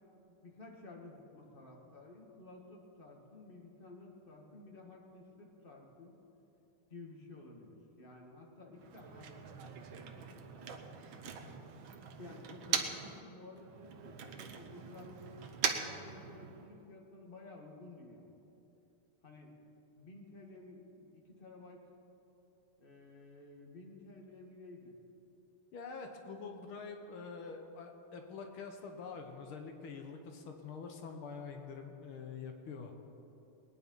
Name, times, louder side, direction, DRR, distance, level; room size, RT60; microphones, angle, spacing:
voice 1, 0.4-6.2 6.9-11.6 12.2-15.3 15.8-18.4 19.2-19.6 19.9-21.9 22.8-25.0, left 2 dB, 25° left, 0 dB, 1.7 m, -53 dB
Motor vehicle (road), 8.8-13.2 13.5-16.8, right 7 dB, 70° right, 1.7 m, -41 dB
voice 2, 25.7-32.9, left 5 dB, 75° left, 4 dB, 1.9 m, -46 dB
20.5 x 9.7 x 5.5 m, 2.9 s
omnidirectional pair, 2.4 m